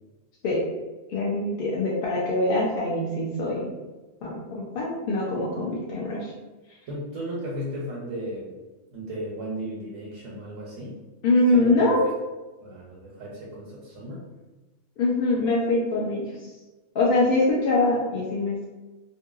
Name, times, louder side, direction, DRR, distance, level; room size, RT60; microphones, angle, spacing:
voice 1, 1.1-3.7 4.2-6.3 11.2-12.0 15.0-16.3 16.9-18.6, left 2 dB, 60° left, -4 dB, 0.6 m, -23 dB
voice 2, 6.9-8.6 8.9-11.0 11.5-12.0 12.6-14.3, right 1 dB, 85° right, -4 dB, 1.0 m, -34 dB
2.7 x 2.6 x 2.3 m, 1.2 s
omnidirectional pair, 1.3 m